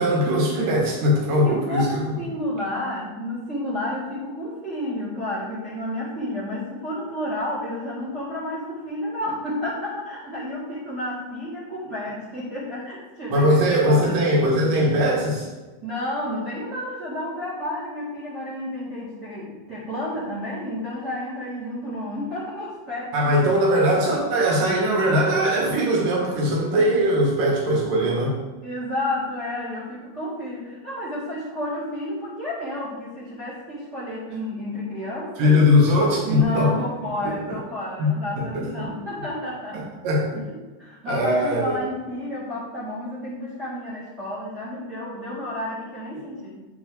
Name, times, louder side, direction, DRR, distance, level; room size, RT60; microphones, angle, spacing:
voice 1, 0.0-1.9 13.3-15.5 23.1-28.3 35.4-36.7 37.2-37.6 38.0-38.7 40.0-40.5 41.1-41.8, equal, 60° right, -3 dB, 3.0 m, -20 dB
voice 2, 1.4-14.3 15.8-23.4 23.7-24.3 28.6-35.5 36.2-39.8 40.5-46.7, left 1 dB, 35° right, -9 dB, 1.8 m, -31 dB
8.9 x 5.2 x 3.9 m, 1.2 s
omnidirectional pair, 4.8 m